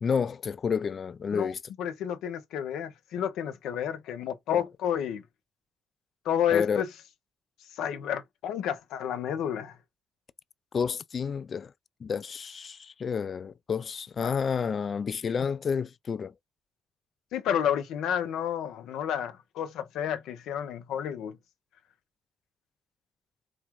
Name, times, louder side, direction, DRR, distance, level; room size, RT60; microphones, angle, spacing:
voice 1, 0.0-1.6 6.5-6.8 10.7-11.7 12.0-16.3, left 6 dB, 45° left, 0.4 m, -30 dB
voice 2, 1.8-5.2 6.2-6.9 7.8-9.8 14.2-14.4 17.3-21.4, left 9 dB, 85° left, 0.8 m, -30 dB
4.1 x 2.5 x 4.6 m
cardioid pair, 90°, 0 cm